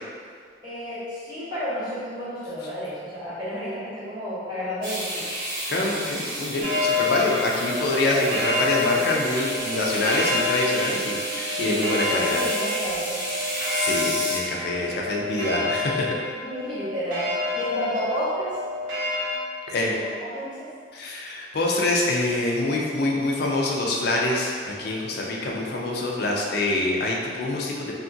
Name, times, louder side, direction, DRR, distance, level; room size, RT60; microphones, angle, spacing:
voice 1, 0.6-5.3 11.6-13.2 16.4-18.6 20.2-20.7, equal, 25° right, -13 dB, 1.1 m, -31 dB
sound 1, 4.8-14.4, right 1 dB, 90° right, 1.2 m, -32 dB
voice 2, 5.7-12.4 13.7-16.1 19.7-19.9 20.9-27.9, left 2 dB, 60° left, -2 dB, 0.4 m, -25 dB
sound 2, 6.6-19.4, left 2 dB, 70° right, 0.6 m, -28 dB
2.8 x 2.4 x 2.6 m, 2.1 s
head